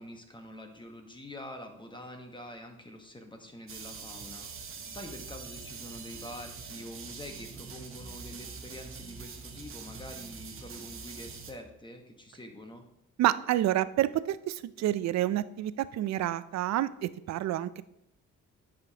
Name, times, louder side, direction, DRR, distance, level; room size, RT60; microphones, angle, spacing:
voice 1, 0.0-12.8, left 1 dB, 15° left, 4 dB, 1.1 m, -46 dB
sound 1, 3.7-11.5, right 5 dB, 45° right, 1.0 m, -44 dB
voice 2, 13.2-17.8, right 13 dB, 65° right, 15 dB, 0.4 m, -29 dB
9.9 x 5.1 x 2.8 m, 0.79 s
cardioid pair, 90°, 30 cm